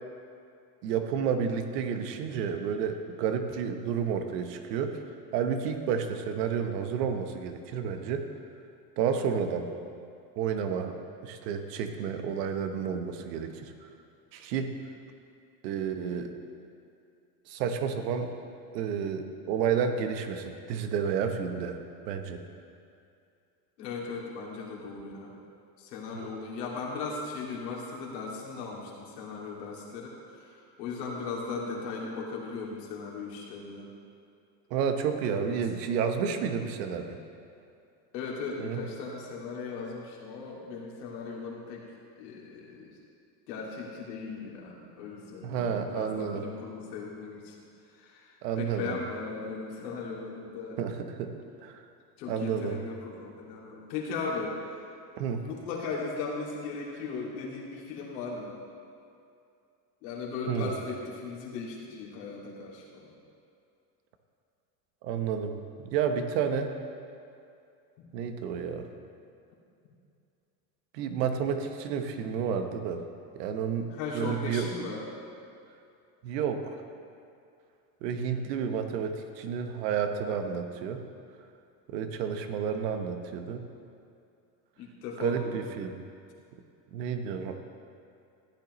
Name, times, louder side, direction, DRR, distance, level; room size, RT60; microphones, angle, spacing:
voice 1, 0.8-4.9 5.3-8.3 9.0-9.7 10.4-10.9 11.2-13.9 14.3-14.7 15.6-16.3 17.5-18.3 18.7-21.8 22.1-22.4 26.1-26.3 34.7-37.2 38.6-38.8 45.4-46.4 48.4-49.0 50.8-51.8 52.3-52.8 55.2-55.4 60.5-60.7 65.0-65.6 65.9-66.7 68.1-68.9 70.9-73.0 73.3-74.7 76.2-76.8 78.0-81.0 81.9-83.6 85.2-86.0 86.9-87.6, right 7 dB, 70° right, 6 dB, 1.2 m, -31 dB
voice 2, 23.8-25.3 25.8-33.9 35.4-35.7 38.1-41.9 42.2-43.0 43.5-47.6 47.9-50.8 52.2-54.8 55.4-58.6 60.0-63.2 73.9-75.1 84.8-85.5, left 4 dB, 75° left, -3 dB, 2.5 m, -37 dB
15.0 x 8.9 x 3.1 m, 2.5 s
hypercardioid pair, 95°, 50 cm